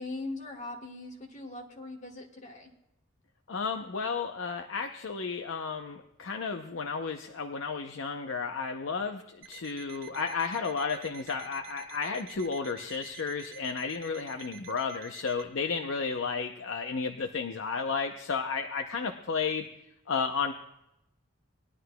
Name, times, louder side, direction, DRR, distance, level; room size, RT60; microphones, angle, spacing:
voice 1, 0.0-2.7, left 2 dB, 35° left, 1 dB, 1.3 m, -40 dB
voice 2, 3.5-19.7 20.1-20.5, left 5 dB, 70° left, 5 dB, 0.6 m, -33 dB
Alarm, 9.4-15.5, right 9 dB, 75° right, 0.8 m, -50 dB
20.0 x 11.0 x 2.2 m, 0.87 s
head